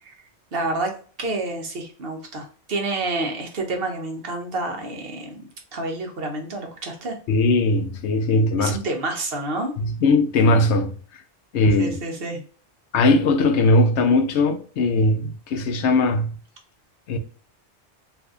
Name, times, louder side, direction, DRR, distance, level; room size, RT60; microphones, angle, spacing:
voice 1, 0.5-0.9 1.2-7.2 8.6-9.7 11.8-12.4, right 2 dB, 60° right, 1.0 m, -29 dB
voice 2, 7.3-8.8 9.8-10.9 11.5-12.0 12.9-16.3 17.1-17.2, left 2 dB, 75° left, 0.9 m, -19 dB
2.6 x 2.6 x 3.5 m
omnidirectional pair, 1.2 m